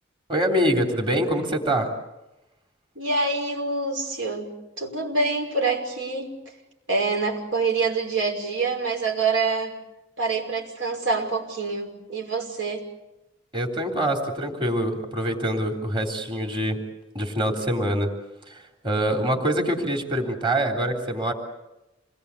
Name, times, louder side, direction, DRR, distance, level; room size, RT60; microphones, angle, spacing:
voice 1, 0.3-1.9 13.5-16.8 17.1-18.1 18.5-21.3, right 1 dB, 25° right, 2 dB, 3.5 m, -25 dB
voice 2, 3.0-6.4 6.9-9.7 10.2-12.8, right 3 dB, 80° right, 1 dB, 5.5 m, -26 dB
28.0 x 20.5 x 8.4 m, 0.96 s
head